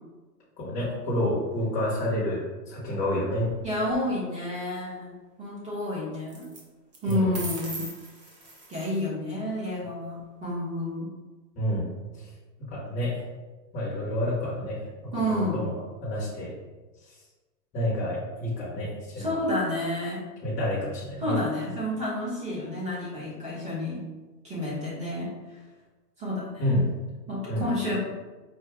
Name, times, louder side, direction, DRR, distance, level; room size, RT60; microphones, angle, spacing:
voice 1, 0.6-3.5 7.1-7.4 11.6-12.3 12.6-13.2 13.7-14.9 15.3-15.8 16.0-16.5 17.0-17.2 17.7-19.3 20.4-21.4 26.6-26.9 27.5-27.6, left 1 dB, 15° left, -6 dB, 1.0 m, -29 dB
sound 1, 3.4-3.9 6.3-6.6 6.9-9.0, right 2 dB, 30° right, 0.4 m, -39 dB
voice 2, 3.6-6.5 7.0-7.9 8.7-11.1 15.1-15.6 19.2-20.2 21.2-24.0 24.4-25.3 26.2-26.7 27.3-28.0, left 1 dB, 15° right, -8 dB, 1.2 m, -30 dB
4.5 x 2.3 x 3.4 m, 1.2 s
hypercardioid pair, 155°, 49 cm